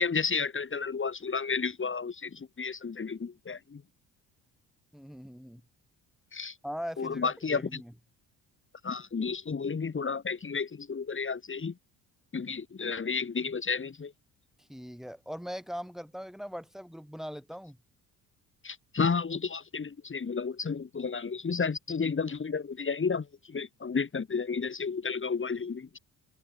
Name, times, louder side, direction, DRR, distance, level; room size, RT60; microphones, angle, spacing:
voice 1, 0.0-3.8 6.3-6.6 7.0-7.8 8.8-11.7 12.3-14.1 18.6-26.0, left 5 dB, 35° left, 4.7 m, -32 dB
voice 2, 4.9-5.6 6.6-7.9 14.6-17.8, equal, ahead, 7.9 m, -40 dB
supercardioid pair, 75°, 37 cm